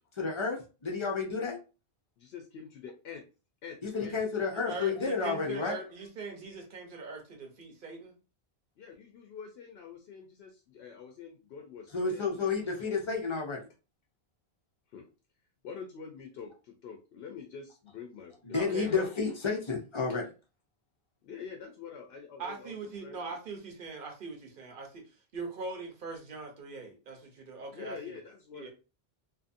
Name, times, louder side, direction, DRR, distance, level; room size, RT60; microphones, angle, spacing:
voice 1, 0.1-1.6 3.8-5.8 11.9-13.6 18.4-20.2, left 4 dB, 35° left, 1 dB, 0.5 m, -31 dB
voice 2, 2.2-3.2 3.6-4.1 8.8-12.9 14.9-15.1 15.6-19.0 21.2-23.4 27.7-28.7, left 6 dB, 75° left, 3 dB, 0.8 m, -46 dB
voice 3, 4.5-8.1 18.5-19.0 22.4-25.0 25.3-28.2 28.5-28.7, right 4 dB, 55° right, 2 dB, 1.0 m, -41 dB
2.6 x 2.5 x 2.5 m, 0.33 s
omnidirectional pair, 1.1 m